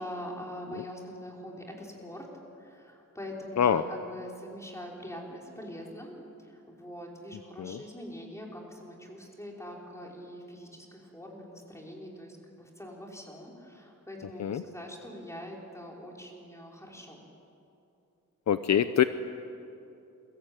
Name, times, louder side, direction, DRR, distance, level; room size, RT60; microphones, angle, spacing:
voice 1, 0.0-2.3 2.6-17.2, equal, 10° left, -1 dB, 5.3 m, -43 dB
voice 2, 18.5-19.0, left 9 dB, 55° left, 11 dB, 0.8 m, -24 dB
29.0 x 23.0 x 9.0 m, 2.7 s
wide cardioid pair, 150°, 32 cm